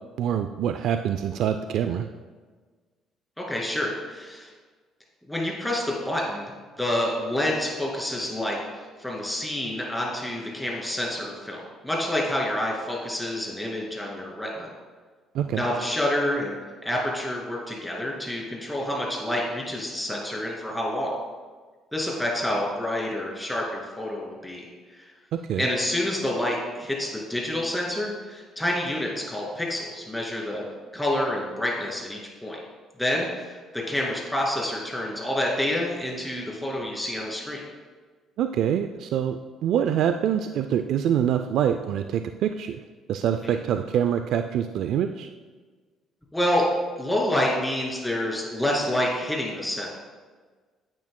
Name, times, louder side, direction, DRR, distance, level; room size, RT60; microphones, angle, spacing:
voice 1, 0.2-2.1 15.3-15.6 25.3-25.7 38.4-42.8 43.1-45.3, right 9 dB, 70° right, 8 dB, 0.3 m, -25 dB
voice 2, 3.4-4.5 5.3-6.5 6.8-14.7 15.6-21.1 21.9-24.7 25.0-25.1 25.6-30.6 30.9-32.6 33.0-37.6 43.4-43.6 46.3-46.7 47.0-49.9, left 1 dB, 5° left, -2 dB, 2.4 m, -28 dB
10.5 x 8.6 x 2.2 m, 1.4 s
cardioid pair, 95°, 0 cm